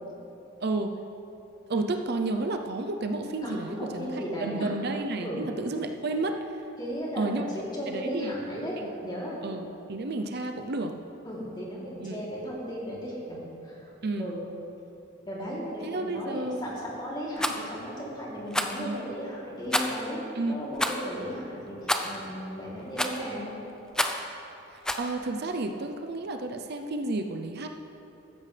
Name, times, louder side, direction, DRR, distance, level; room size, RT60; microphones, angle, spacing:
voice 1, 0.6-0.9 1.7-6.4 7.2-7.4 7.9-8.3 8.8-9.1 9.4-11.0 12.0-12.2 14.0-14.3 15.8-16.7 18.8-19.0 20.4-20.5 24.7-27.7, right 2 dB, 55° right, 5 dB, 0.6 m, -31 dB
voice 2, 3.4-4.7 5.2-5.4 6.8-8.8 9.0-9.4 11.2-13.4 13.6-13.9 14.2-14.4 15.2-20.2 20.5-21.8 22.0-23.6, equal, 20° left, -6 dB, 3.2 m, -35 dB
Rattle, 17.4-17.6 18.5-18.8 19.7-20.1 20.8-21.0 21.9-22.2 23.0-23.3 23.9-24.3 24.9-25.1, left 1 dB, 5° left, 0.6 m, -28 dB
15.5 x 13.5 x 3.4 m, 3.0 s
head